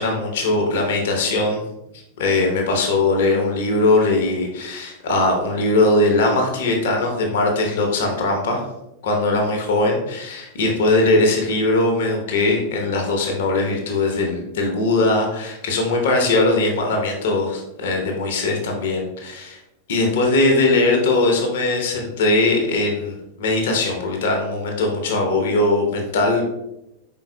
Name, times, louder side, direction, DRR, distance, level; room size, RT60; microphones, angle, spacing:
voice 1, 0.0-1.6 2.2-8.7 9.0-19.6 19.9-26.4, left 2 dB, 55° left, 1 dB, 0.9 m, -20 dB
4.6 x 3.8 x 2.2 m, 0.89 s
figure-of-eight pair, 90°, 0 cm